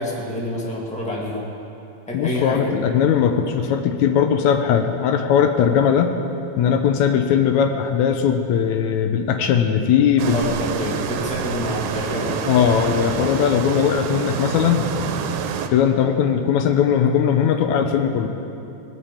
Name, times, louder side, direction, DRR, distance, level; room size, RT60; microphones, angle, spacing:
voice 1, 0.0-1.4 2.1-2.7 10.3-12.5, left 1 dB, 5° left, -3 dB, 0.6 m, -27 dB
voice 2, 2.1-6.2 6.6-10.5 12.5-14.9 15.7-18.3, left 8 dB, 80° left, 5 dB, 1.6 m, -19 dB
sound 1, 10.2-15.7, right 7 dB, 90° right, 2.8 m, -27 dB
19.5 x 8.0 x 8.6 m, 2.8 s
omnidirectional pair, 4.4 m